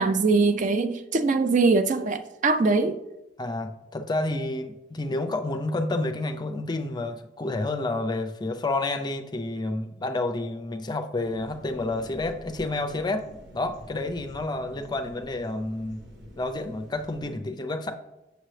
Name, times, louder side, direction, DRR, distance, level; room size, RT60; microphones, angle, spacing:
voice 1, 0.0-3.0, right 3 dB, 40° right, 10 dB, 0.4 m, -22 dB
voice 2, 3.4-13.3 13.5-16.0 16.4-17.9, left 2 dB, 20° left, 7 dB, 0.5 m, -29 dB
sound 1, 11.2-17.3, equal, 75° right, 1.5 m, -47 dB
7.7 x 6.8 x 3.2 m, 0.97 s
head